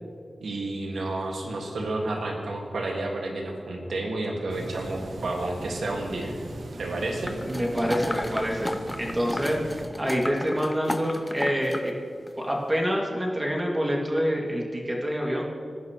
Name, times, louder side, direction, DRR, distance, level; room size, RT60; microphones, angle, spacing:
voice 1, 0.4-6.3 6.8-7.3, right 2 dB, 90° right, 0 dB, 1.8 m, -30 dB
sound 1, 4.5-9.9, right 2 dB, 70° right, 1.1 m, -39 dB
sound 2, 7.2-11.9 12.3-12.4, left 1 dB, 15° left, 0.6 m, -34 dB
voice 2, 7.4-11.9 12.4-15.4, equal, 15° right, -1 dB, 2.2 m, -27 dB
18.5 x 10.5 x 3.1 m, 2.1 s
wide cardioid pair, 70°, 0 cm